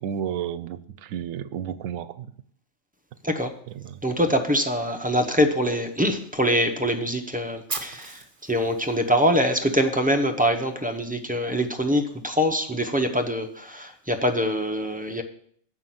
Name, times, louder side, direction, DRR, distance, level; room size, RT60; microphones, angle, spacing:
voice 1, 0.0-2.3 3.8-4.0, right 9 dB, 80° right, 15 dB, 1.0 m, -32 dB
voice 2, 4.0-15.2, equal, 10° right, 5 dB, 0.5 m, -24 dB
Fire, 7.7-9.7, right 4 dB, 40° right, 1.4 m, -36 dB
7.5 x 5.7 x 7.6 m, 0.63 s
omnidirectional pair, 1.4 m